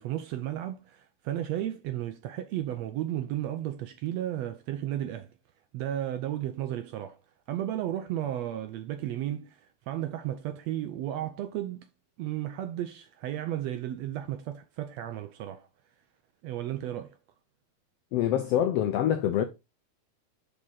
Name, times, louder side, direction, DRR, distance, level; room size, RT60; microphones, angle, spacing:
voice 1, 0.0-5.3 5.7-7.2 7.5-11.9 12.2-15.7 16.4-17.2, right 12 dB, 75° right, 1.6 m, -34 dB
voice 2, 18.1-19.4, left 10 dB, 85° left, 1.3 m, -25 dB
5.5 x 5.0 x 3.9 m
omnidirectional pair, 3.5 m